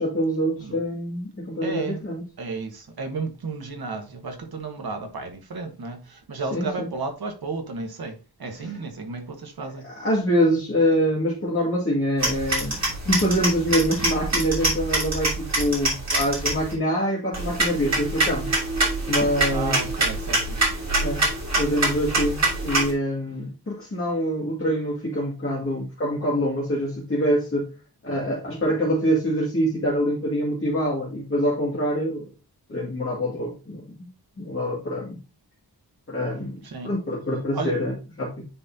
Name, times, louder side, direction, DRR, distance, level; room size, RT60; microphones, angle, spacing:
voice 1, 0.0-2.2 6.5-6.9 8.6-8.8 9.8-18.5 19.1-19.8 21.0-21.3 21.6-27.7 28.0-32.3 32.7-34.1 34.4-35.2 36.1-38.5, equal, 35° left, 2.1 m, -25 dB
voice 2, 1.6-2.0 2.4-9.8 19.5-20.7 36.6-37.0 37.5-37.7, right 3 dB, 65° right, 1.5 m, -33 dB
sound 1, 12.2-16.7 17.3-22.9, right 2 dB, 40° right, 3.0 m, -25 dB
9.6 x 4.2 x 2.7 m
wide cardioid pair, 145°, 39 cm